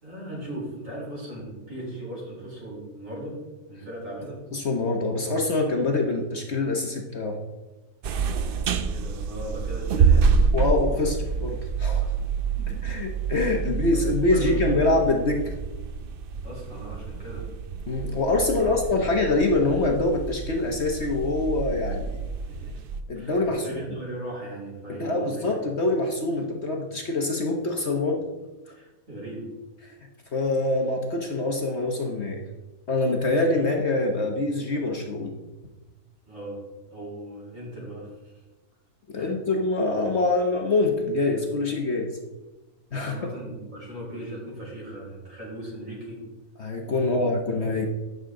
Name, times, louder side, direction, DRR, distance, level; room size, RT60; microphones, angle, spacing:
voice 1, 0.0-3.4 3.7-4.4 8.8-10.4 12.0-12.8 13.6-14.9 16.4-17.5 18.6-19.0 22.5-22.8 23.1-25.7 28.7-29.5 36.3-36.6 36.9-38.4 39.1-39.3 42.9-46.2 47.0-47.2 47.5-47.6, right 1 dB, 55° right, -5 dB, 4.7 m, -38 dB
voice 2, 4.5-7.4 10.5-12.0 12.8-15.5 17.9-22.2 23.1-23.8 24.9-28.2 29.9-30.0 30.3-32.4 32.9-35.4 39.1-42.1 42.9-43.1 46.6-47.9, left 2 dB, 50° left, 2 dB, 1.2 m, -25 dB
sound 1, 8.0-23.0, right 5 dB, 70° right, 0.5 m, -27 dB
14.5 x 6.6 x 3.8 m, 1.1 s
omnidirectional pair, 1.6 m